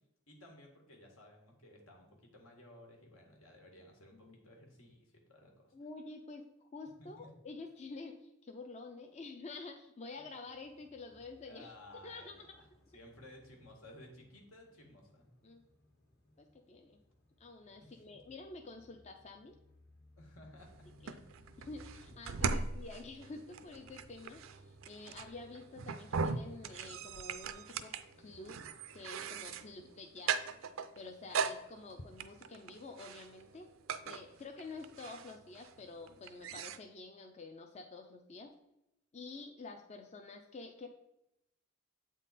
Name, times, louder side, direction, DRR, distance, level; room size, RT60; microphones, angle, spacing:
voice 1, 0.3-5.7 7.0-7.3 11.5-12.6 12.9-15.3 17.8-18.2 20.2-20.9 22.4-22.6, left 1 dB, 80° left, 1 dB, 1.6 m, -56 dB
voice 2, 5.7-11.7 12.0-12.5 15.4-15.6 16.4-17.0 17.4-19.6 21.0-21.2 21.6-27.9 28.2-28.6 28.9-30.3 31.0-33.7 34.0-38.5 39.1-40.9, left 3 dB, 35° left, 4 dB, 0.5 m, -49 dB
sound 1, 10.5-30.1, left 1 dB, 50° left, 1.3 m, -65 dB
sound 2, 20.6-36.8, right 5 dB, 70° right, 0.4 m, -40 dB
8.1 x 3.8 x 4.1 m, 0.85 s
head